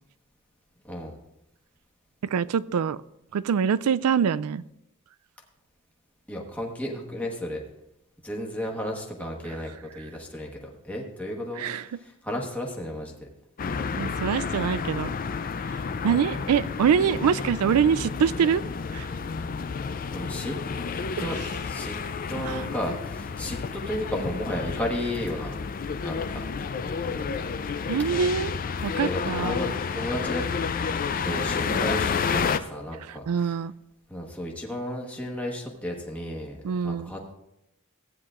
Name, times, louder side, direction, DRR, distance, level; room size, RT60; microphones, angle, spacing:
voice 1, 0.9-1.2 6.3-7.6 8.2-13.3 16.0-16.3 20.1-20.5 21.2-21.9 22.3-25.6 26.0-26.4 27.0-27.3 28.9-30.4 31.2-33.6 34.1-36.6 36.8-37.3, left 1 dB, 5° left, -1 dB, 1.3 m, -33 dB
voice 2, 2.3-3.0 3.3-4.6 11.6-11.8 14.0-15.1 16.0-18.6 18.9-19.1 22.4-22.6 27.9-28.5 28.8-29.6 33.3-33.7 36.6-37.1, right 7 dB, 90° right, 17 dB, 0.4 m, -24 dB
sound 1, 13.6-32.6, left 5 dB, 40° left, 0.4 m, -30 dB
15.5 x 9.5 x 2.5 m, 0.86 s
head